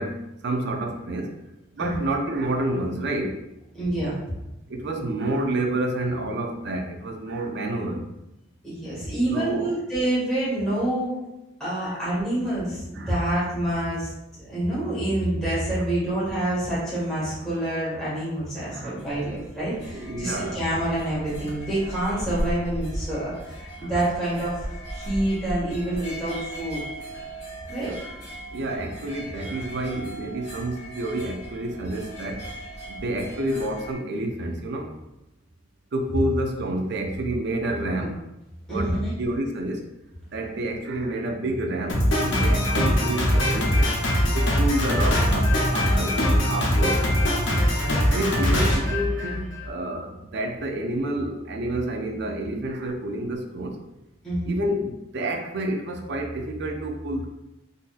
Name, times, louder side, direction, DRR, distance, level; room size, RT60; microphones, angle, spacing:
voice 1, 0.0-1.4 1.7-3.4 4.7-8.1 9.1-9.7 11.8-12.0 12.9-13.1 18.7-18.9 19.9-20.6 23.8-23.9 28.5-32.5 32.9-34.9 35.9-38.2 38.7-39.9 40.3-43.9 44.3-47.1 48.0-53.8 54.5-57.3, right 1 dB, 60° right, 4 dB, 0.5 m, -29 dB
voice 2, 3.7-4.1 8.6-11.1 11.6-14.1 14.4-26.8 27.7-27.9 38.7-39.1 54.2-54.6, right 1 dB, ahead, -11 dB, 1.4 m, -27 dB
sound 1, 19.0-33.9, equal, 35° left, 1.3 m, -37 dB
Drum kit, 41.9-49.7, equal, 65° left, 0.8 m, -22 dB
3.9 x 2.6 x 2.4 m, 0.90 s
head